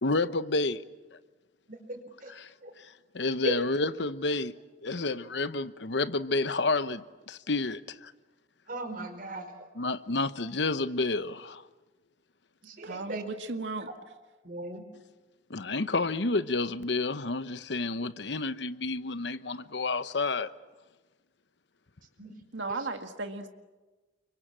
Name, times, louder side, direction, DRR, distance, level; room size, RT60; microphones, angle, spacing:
voice 1, 0.0-0.8 2.3-2.5 2.8-4.5 4.8-8.1 9.8-11.6 15.5-20.5, left 3 dB, 70° left, 1.0 m, -30 dB
voice 2, 1.7-2.3 2.6-2.7 3.4-3.6 4.9-5.0 8.7-9.5 12.6-13.2 14.4-14.8 22.2-22.3, right 2 dB, 50° right, 4.9 m, -37 dB
voice 3, 12.8-13.9 22.5-23.5, right 3 dB, 80° right, 1.9 m, -35 dB
30.0 x 24.5 x 7.6 m
head